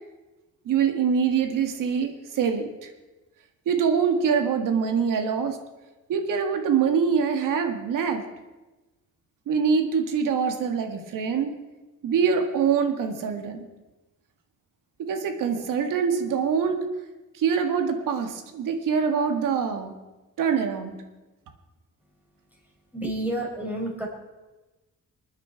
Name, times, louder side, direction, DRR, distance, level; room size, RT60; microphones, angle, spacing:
voice 1, 0.7-2.9 3.7-5.6 6.1-8.3 9.5-11.5 12.0-13.7 15.1-16.8 17.4-19.9 20.4-21.0, right 6 dB, 80° right, 6 dB, 1.8 m, -24 dB
voice 2, 22.9-24.1, right 1 dB, 5° right, -1 dB, 4.6 m, -29 dB
26.5 x 9.6 x 4.6 m, 1.1 s
cardioid pair, 155°, 31 cm